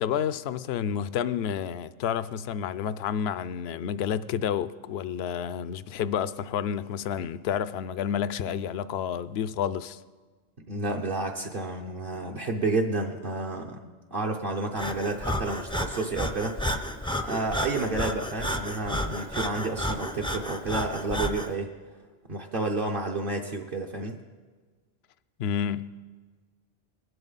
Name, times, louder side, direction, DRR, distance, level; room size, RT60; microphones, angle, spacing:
voice 1, 0.0-10.0 25.4-26.0, left 8 dB, 75° left, 0.8 m, -30 dB
voice 2, 10.7-16.6 17.2-21.7 22.3-24.2, right 2 dB, 55° right, 1.1 m, -30 dB
Breathing, 14.8-21.5, equal, 5° left, 0.5 m, -32 dB
20.5 x 11.0 x 4.0 m
omnidirectional pair, 1.1 m